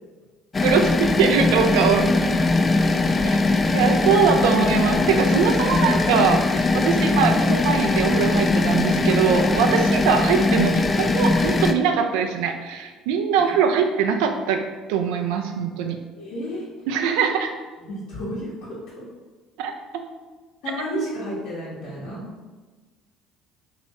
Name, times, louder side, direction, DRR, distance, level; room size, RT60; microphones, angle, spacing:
sound 1, 0.5-11.7, left 3 dB, 30° left, 0.3 m, -21 dB
voice 1, 0.6-2.4 3.3-3.4 3.7-14.6 14.9-16.0 16.9-17.5 19.6-20.0 20.9-21.1, right 6 dB, 70° right, 5 dB, 0.3 m, -22 dB
voice 2, 16.2-16.6 17.9-18.5 20.6-22.3, left 1 dB, 70° left, -9 dB, 1.2 m, -33 dB
3.1 x 2.8 x 4.5 m, 1.3 s
hypercardioid pair, 60°, 0 cm